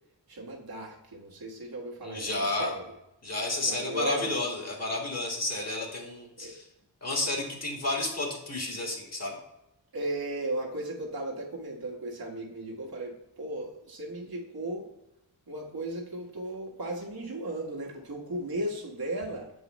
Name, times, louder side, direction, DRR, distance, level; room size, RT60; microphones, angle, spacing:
voice 1, 0.3-2.8 3.6-4.3 6.4-6.5 9.9-14.9 15.5-19.5, right 1 dB, 70° right, -2 dB, 1.5 m, -36 dB
voice 2, 2.0-2.7 3.2-6.6 7.0-9.4, left 2 dB, 40° left, 0 dB, 1.9 m, -31 dB
6.6 x 4.8 x 3.1 m, 0.88 s
cardioid pair, 60°, 38 cm